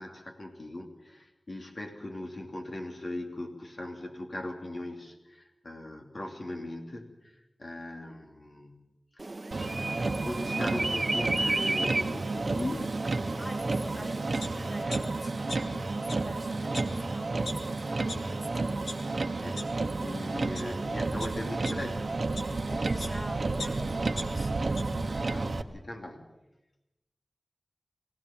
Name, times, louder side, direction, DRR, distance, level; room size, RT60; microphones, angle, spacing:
voice 1, 0.0-8.9 9.8-13.0 13.6-14.1 19.4-19.6 20.0-22.2 25.1-26.3, left 1 dB, 50° left, 2 dB, 2.8 m, -39 dB
sound 1, 9.2-14.8, right 2 dB, 35° right, 1.1 m, -34 dB
Motor vehicle (road), 9.5-25.6, right 3 dB, 60° right, 1.2 m, -31 dB
voice 2, 13.4-19.0 22.7-25.0, equal, 20° left, 2 dB, 3.4 m, -44 dB
sound 2, 14.4-14.5 14.9-15.8 16.1-16.2 16.7-16.8 17.5-17.6 18.1-18.2 18.7-18.9 19.6-19.7 20.3-20.6 21.2-23.2 23.6-24.8 25.2-25.3, left 2 dB, 85° left, 2.1 m, -40 dB
23.0 x 17.0 x 7.3 m, 0.98 s
wide cardioid pair, 80°, 0 cm